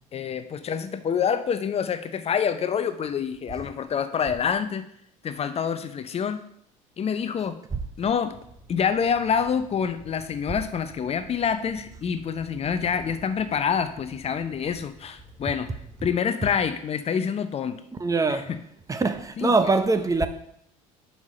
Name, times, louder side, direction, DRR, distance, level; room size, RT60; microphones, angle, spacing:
voice 1, 0.1-4.9 5.2-6.4 7.0-7.6 8.0-8.3 8.7-15.7 16.0-17.8 18.3-18.6 19.4-19.5, left 7 dB, 35° left, 0.7 m, -27 dB
sound 1, 8.3-16.0, equal, 5° left, 1.5 m, -50 dB
voice 2, 18.0-18.5 18.9-20.3, right 3 dB, 20° right, 0.7 m, -23 dB
5.6 x 4.7 x 6.4 m
hypercardioid pair, 65°, 18 cm